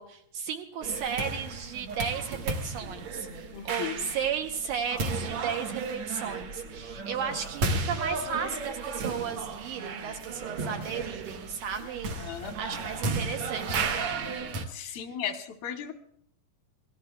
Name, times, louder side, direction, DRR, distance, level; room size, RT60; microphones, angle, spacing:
voice 1, 0.0-13.9 14.8-15.0, right 7 dB, 75° right, 4 dB, 2.0 m, -34 dB
sound 1, 0.8-14.7, right 3 dB, 90° right, 1.2 m, -34 dB
voice 2, 3.5-4.1 12.2-12.6 14.7-15.9, left 9 dB, 85° left, 5 dB, 3.0 m, -36 dB
26.0 x 18.0 x 2.3 m, 0.65 s
omnidirectional pair, 4.2 m